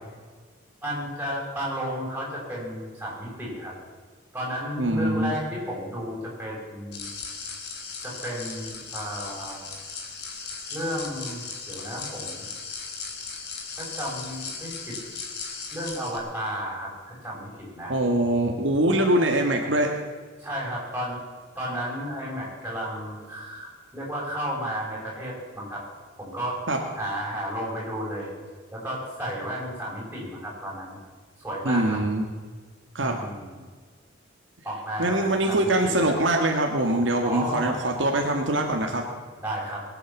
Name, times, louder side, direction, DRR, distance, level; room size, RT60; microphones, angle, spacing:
voice 1, 0.8-3.7 4.3-7.1 8.0-9.6 10.7-12.5 13.7-15.0 15.7-17.9 20.4-21.2 21.5-25.8 26.2-26.6 26.9-28.3 28.7-31.0 31.4-32.0 33.0-33.6 34.6-36.1 37.2-37.8 39.4-39.8, equal, 10° right, -5 dB, 6.6 m, -33 dB
voice 2, 4.8-5.3 17.9-19.9 26.7-26.8 31.6-32.3 33.0-33.2 35.0-39.0, right 1 dB, 65° right, 2 dB, 1.8 m, -23 dB
sound 1, 6.9-16.2, left 5 dB, 55° left, 2.8 m, -37 dB
21.5 x 9.3 x 7.3 m, 1.5 s
head